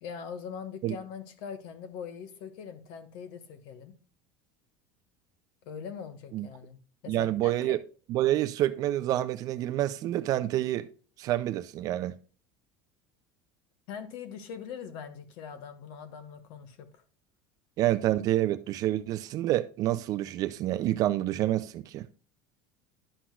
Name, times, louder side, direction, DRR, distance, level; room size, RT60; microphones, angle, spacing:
voice 1, 0.0-3.9 5.6-7.8 13.9-17.0, left 7 dB, 50° left, 1.2 m, -42 dB
voice 2, 7.1-7.8 8.1-10.9 11.2-12.1 17.8-22.1, right 14 dB, 35° right, 0.4 m, -28 dB
11.5 x 6.0 x 2.4 m
cardioid pair, 175°, 11 cm